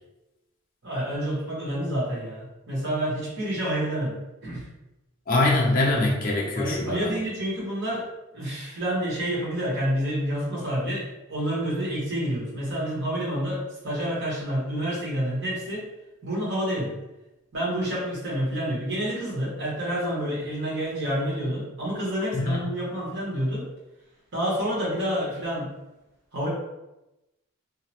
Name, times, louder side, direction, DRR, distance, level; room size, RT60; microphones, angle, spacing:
voice 1, 0.8-4.7 6.5-8.0 8.3-15.8 16.2-17.0 17.5-23.6 24.3-25.7 26.3-26.5, equal, 50° right, -5 dB, 1.1 m, -28 dB
voice 2, 5.3-7.1 22.3-22.7, left 2 dB, 40° left, -2 dB, 0.4 m, -23 dB
2.7 x 2.0 x 2.8 m, 0.96 s
head